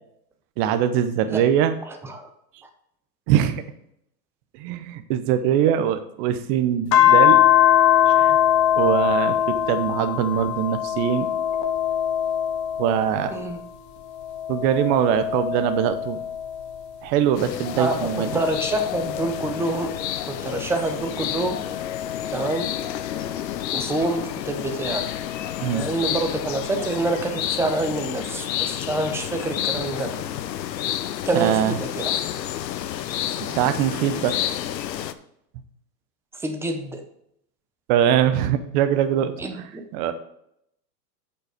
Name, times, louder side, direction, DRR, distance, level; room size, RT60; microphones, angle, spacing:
voice 1, 0.6-1.8 3.3-3.6 4.6-7.4 8.1-8.4 8.8-11.3 12.8-13.3 14.5-16.2 17.0-18.3 25.6-25.9 31.3-31.8 33.4-34.3 37.9-40.1, right 10 dB, 35° right, 10 dB, 0.8 m, -22 dB
voice 2, 1.9-2.3 13.3-13.6 17.8-19.9 20.2-21.6 22.3-22.7 23.7-25.1 25.7-30.1 31.3-32.1 36.4-37.0 39.4-39.8, right 2 dB, 5° right, 6 dB, 0.7 m, -27 dB
sound 1, 6.9-13.6 14.1-17.0 17.6-20.4 21.1-23.6 24.9-26.0, left 11 dB, 20° left, 0.4 m, -23 dB
sound 2, 17.3-35.1, left 11 dB, 80° left, 0.9 m, -30 dB
8.4 x 5.7 x 5.0 m, 0.75 s
hypercardioid pair, 140°, 49 cm